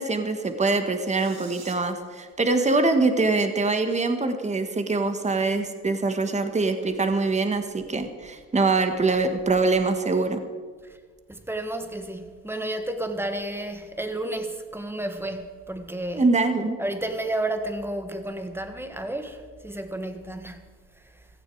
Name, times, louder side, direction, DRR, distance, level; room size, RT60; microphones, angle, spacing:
voice 1, 0.0-10.4 16.1-16.8, right 3 dB, 25° right, 1.6 m, -24 dB
sound 1, 0.9-1.7, right 6 dB, 60° right, 3.1 m, -46 dB
voice 2, 11.3-16.3 16.8-20.6, right 1 dB, 10° right, 1.7 m, -31 dB
17.0 x 15.0 x 4.8 m
cardioid pair, 90°, 30 cm